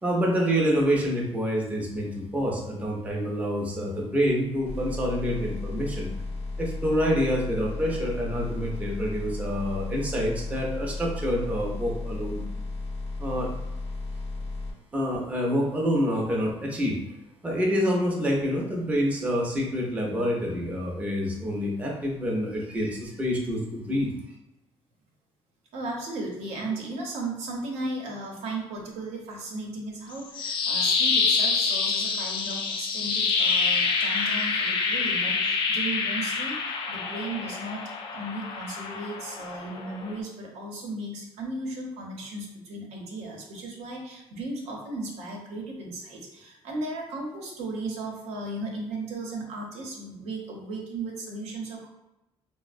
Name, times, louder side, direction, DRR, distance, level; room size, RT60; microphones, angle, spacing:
voice 1, 0.0-6.1 6.6-12.4 13.2-13.5 14.9-17.0 17.4-24.1, equal, 15° right, -2 dB, 0.5 m, -27 dB
sound 1, 4.7-14.7, left 3 dB, 65° left, 0.8 m, -34 dB
voice 2, 25.7-37.8 38.1-51.9, right 2 dB, 85° right, 0 dB, 0.8 m, -36 dB
sound 2, 30.1-40.2, left 4 dB, 45° left, 0.4 m, -27 dB
4.0 x 2.0 x 2.5 m, 0.92 s
cardioid pair, 160°, 11 cm